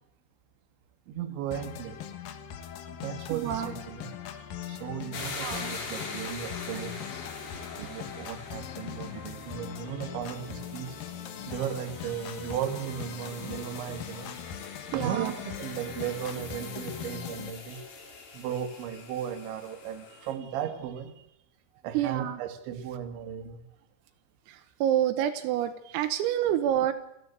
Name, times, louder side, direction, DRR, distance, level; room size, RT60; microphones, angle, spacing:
voice 1, 1.1-2.0 2.9-6.9 7.7-11.0 11.5-14.3 14.9-17.8 18.3-21.2 21.8-23.6, right 9 dB, 70° right, 7 dB, 3.8 m, -36 dB
sound 1, 1.5-17.5, left 9 dB, 75° left, 2.1 m, -41 dB
voice 2, 3.3-3.8 5.4-5.8 13.6-13.8 14.9-15.3 22.0-22.4 24.5-26.9, right 11 dB, 85° right, 8 dB, 3.9 m, -28 dB
sound 2, 5.1-20.3, left 4 dB, 45° left, 3.8 m, -43 dB
29.5 x 11.0 x 8.2 m, 0.81 s
omnidirectional pair, 5.9 m